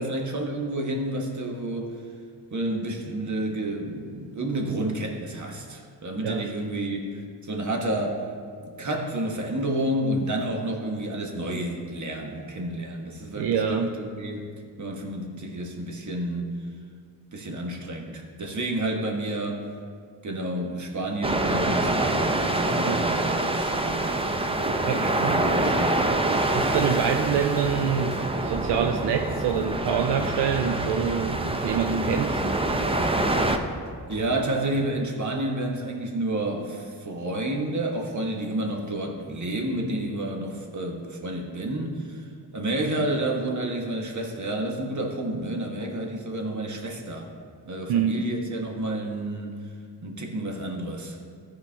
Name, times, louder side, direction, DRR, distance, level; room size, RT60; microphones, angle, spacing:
voice 1, 0.0-1.9 2.5-8.2 8.6-14.5 14.8-16.6 17.3-19.6 20.2-24.2 25.0-26.3 33.4-33.7 34.1-42.2 42.5-47.3 47.6-49.5 50.0-51.2, right 1 dB, 45° right, 1 dB, 1.5 m, -30 dB
voice 2, 13.3-13.9 22.8-23.0 24.9-25.4 26.5-32.4 47.9-48.2, right 7 dB, 80° right, 5 dB, 0.6 m, -26 dB
sound 1, 21.2-33.6, right 2 dB, 15° right, 0.6 m, -26 dB
sound 2, 26.4-34.4, equal, 45° left, 1.9 m, -42 dB
14.0 x 4.7 x 3.6 m, 2.1 s
cardioid pair, 65°, 41 cm